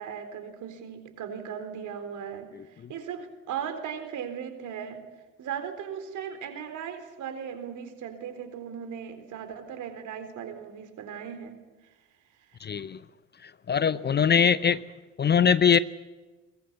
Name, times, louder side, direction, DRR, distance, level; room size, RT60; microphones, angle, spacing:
voice 1, 0.0-5.0 5.4-11.6, right 8 dB, 50° right, 8 dB, 4.0 m, -37 dB
voice 2, 12.6-13.0 13.4-14.8 15.2-15.8, left 7 dB, 25° left, 17 dB, 0.8 m, -22 dB
22.5 x 21.0 x 8.3 m, 1.2 s
figure-of-eight pair, 55°, 37 cm